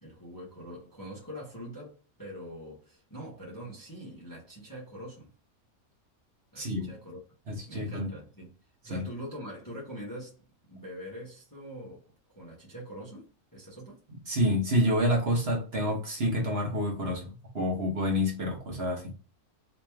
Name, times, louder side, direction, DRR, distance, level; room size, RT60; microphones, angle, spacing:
voice 1, 0.0-5.3 6.5-7.2 7.7-8.6 8.8-10.4 10.7-12.0 12.3-14.0, equal, 15° left, 0.9 m, -43 dB
voice 2, 6.6-6.9 7.5-8.1 8.9-9.0 14.3-19.1, equal, 50° right, 1.2 m, -28 dB
3.1 x 2.9 x 3.3 m
omnidirectional pair, 1.5 m